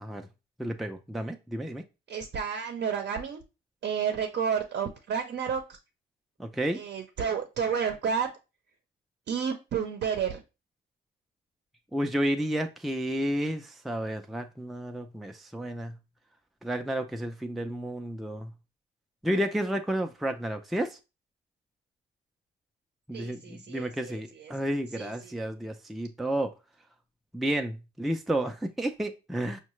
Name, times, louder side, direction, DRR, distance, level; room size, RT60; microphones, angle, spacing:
voice 1, 0.6-1.8 6.4-6.8 11.9-15.9 16.6-18.5 19.2-21.0 23.1-26.5 27.3-29.6, right 1 dB, ahead, 5 dB, 0.4 m, -31 dB
voice 2, 2.1-3.4 3.8-5.8 6.7-8.3 9.3-10.4 23.1-24.5 25.0-25.3, right 7 dB, 60° right, 5 dB, 0.7 m, -31 dB
5.5 x 2.1 x 3.0 m, 0.28 s
cardioid pair, 90°, 20 cm